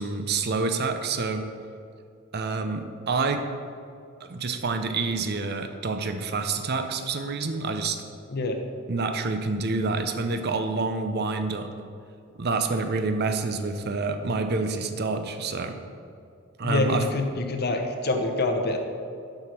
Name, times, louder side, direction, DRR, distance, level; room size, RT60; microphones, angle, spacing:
voice 1, 0.0-1.4 2.3-3.4 4.2-8.0 8.9-11.7 12.4-15.8 16.6-17.0, right 3 dB, 50° right, 7 dB, 0.6 m, -27 dB
voice 2, 16.6-18.8, left 2 dB, 50° left, 4 dB, 0.9 m, -26 dB
7.9 x 6.0 x 5.8 m, 2.4 s
head